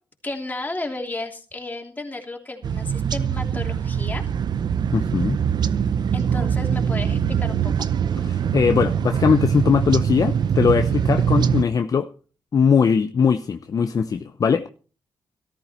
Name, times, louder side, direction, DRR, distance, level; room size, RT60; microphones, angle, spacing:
voice 1, 0.2-4.2 6.1-7.7, left 2 dB, 20° left, 3.1 m, -33 dB
sound 1, 2.6-11.6, right 8 dB, 60° right, 0.7 m, -23 dB
voice 2, 4.9-5.4 8.3-12.1 12.5-14.7, left 6 dB, 45° left, 0.7 m, -20 dB
14.0 x 13.5 x 4.4 m
cardioid pair, 90°, 8 cm